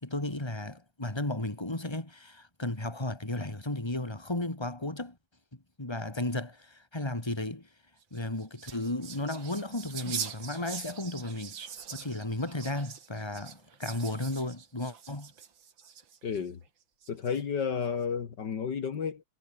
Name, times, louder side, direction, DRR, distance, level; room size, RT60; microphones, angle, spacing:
voice 1, 0.0-5.2 5.8-7.7 8.1-11.6 11.9-15.3, left 2 dB, 15° left, 3.3 m, -34 dB
sound 1, 8.0-16.4 17.0-17.6, right 7 dB, 85° right, 2.7 m, -43 dB
voice 2, 16.2-16.6 17.1-19.2, left 6 dB, 65° left, 2.4 m, -32 dB
omnidirectional pair, 2.0 m